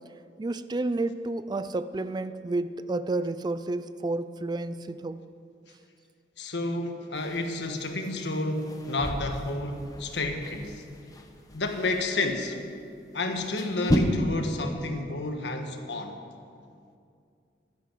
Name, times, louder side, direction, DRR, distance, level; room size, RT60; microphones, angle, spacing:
voice 1, 0.4-5.2, right 2 dB, 25° right, 13 dB, 0.4 m, -30 dB
voice 2, 6.4-10.8 11.5-12.6 13.1-16.2, left 2 dB, 80° left, 5 dB, 1.4 m, -30 dB
sound 1, 7.1-14.0, equal, 20° left, 1.1 m, -35 dB
12.5 x 11.0 x 7.5 m, 2.4 s
head